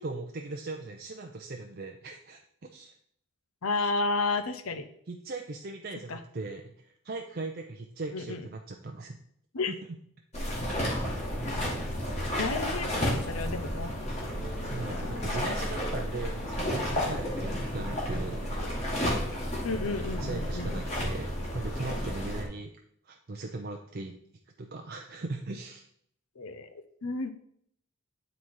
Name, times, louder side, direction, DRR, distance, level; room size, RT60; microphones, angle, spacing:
voice 1, 0.0-2.9 5.1-9.2 9.7-9.8 14.6-19.1 19.8-22.7 23.1-24.1 24.6-25.9, right 2 dB, 45° right, 2 dB, 0.6 m, -39 dB
voice 2, 3.6-4.9 6.1-6.2 8.1-8.5 9.5-9.7 12.4-13.9 14.8-15.4 19.6-20.7 26.4-26.7 27.0-27.3, left 3 dB, 90° left, 10 dB, 0.7 m, -32 dB
sound 1, 10.3-22.4, equal, 30° left, 1.9 m, -32 dB
8.8 x 4.1 x 4.7 m, 0.66 s
head